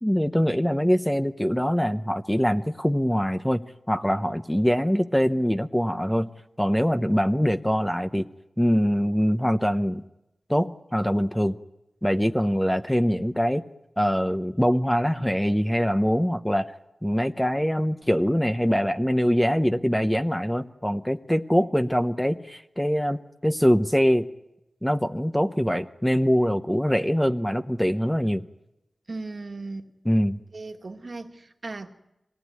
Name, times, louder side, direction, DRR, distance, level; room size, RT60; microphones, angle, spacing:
voice 1, 0.0-6.3 6.6-8.3 8.6-10.0 10.5-11.6 12.0-13.6 14.0-16.7 17.0-24.3 24.8-28.4 30.0-30.4, equal, 5° left, 0.8 m, -23 dB
voice 2, 29.1-29.9 30.5-31.9, right 3 dB, 55° right, 1.9 m, -37 dB
24.5 x 18.0 x 9.5 m
wide cardioid pair, 80°, 0 cm